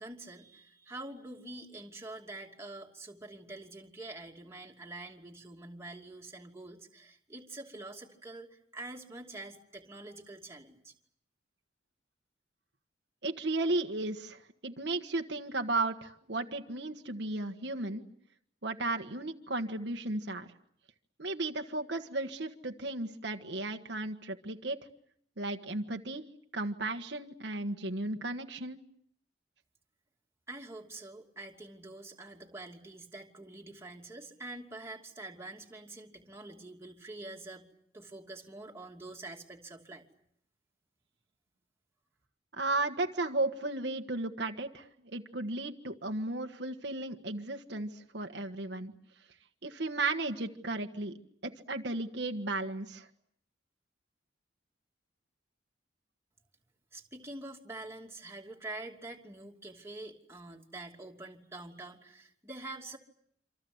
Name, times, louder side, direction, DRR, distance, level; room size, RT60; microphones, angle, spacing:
voice 1, 0.0-10.9 30.5-37.7 37.9-40.0 56.9-63.0, right 2 dB, 15° right, 0 dB, 2.8 m, -46 dB
voice 2, 13.2-18.0 18.6-20.5 21.2-24.8 25.4-26.2 26.5-28.8 42.5-48.9 49.6-51.2 51.4-53.1, right 2 dB, 70° right, 4 dB, 1.5 m, -34 dB
27.5 x 26.0 x 8.0 m, 0.69 s
head